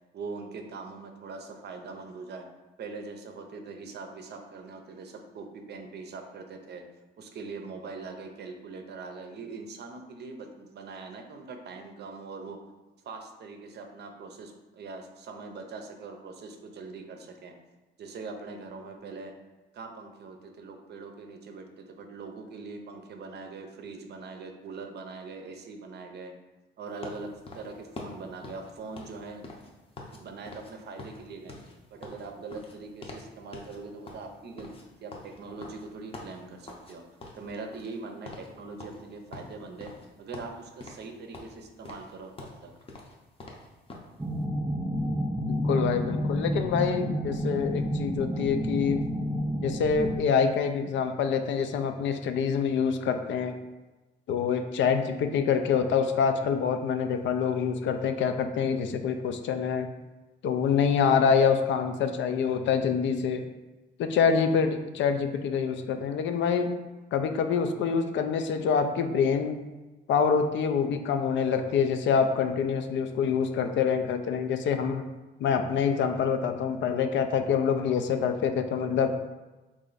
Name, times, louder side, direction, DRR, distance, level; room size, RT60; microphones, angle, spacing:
voice 1, 0.1-2.4 2.8-6.8 7.2-12.6 13.0-17.5 18.0-19.3 19.7-26.3 26.8-29.5 30.1-31.6 31.9-34.7 35.0-37.0 37.3-39.9 40.2-42.3 42.6-42.7, right 4 dB, 60° right, 4 dB, 0.6 m, -42 dB
sound 1, 27.0-30.2 30.5-30.7 31.0-33.3 33.5-33.8 34.1-36.9 37.2-38.0 38.2-38.5 38.8-40.1 40.3-41.1 41.3-44.1, left 2 dB, 30° left, 0.6 m, -45 dB
sound 2, 44.2-50.2, equal, 10° right, 0.4 m, -30 dB
voice 2, 45.5-49.1 49.6-53.5 54.3-59.9 60.4-63.4 64.0-66.7 67.1-69.6 70.1-75.1 75.4-79.2, left 6 dB, 70° left, 7 dB, 0.4 m, -26 dB
3.1 x 2.5 x 3.9 m, 1.1 s
cardioid pair, 90°, 20 cm